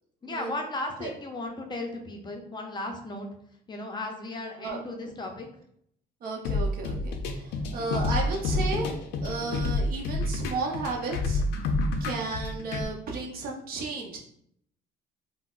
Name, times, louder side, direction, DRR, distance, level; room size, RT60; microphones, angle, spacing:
voice 1, 0.2-3.3 3.7-5.5, left 2 dB, 25° left, 2 dB, 0.5 m, -35 dB
voice 2, 6.2-8.9 9.2-11.4 12.0-14.2, right 3 dB, 60° right, -1 dB, 0.7 m, -33 dB
sound 1, 6.4-12.8, left 2 dB, 85° left, 0.4 m, -28 dB
3.8 x 2.0 x 2.4 m, 0.69 s
cardioid pair, 110°, 17 cm